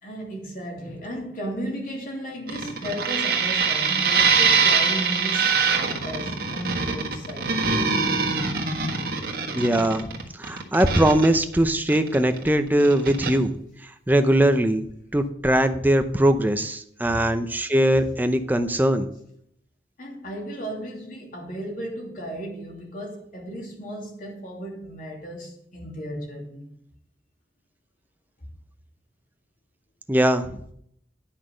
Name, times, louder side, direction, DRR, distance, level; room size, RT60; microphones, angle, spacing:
voice 1, 0.0-7.7 15.7-15.9 17.0-17.3 20.0-26.7, equal, 50° left, 3.0 m, -35 dB
sound 1, 2.5-12.5 12.8-13.3, right 5 dB, 55° right, 1.7 m, -23 dB
voice 2, 9.6-10.1 10.4-13.6 14.1-14.8 15.1-19.1 30.1-30.6, right 1 dB, 10° right, 0.7 m, -21 dB
10.0 x 5.8 x 6.4 m
head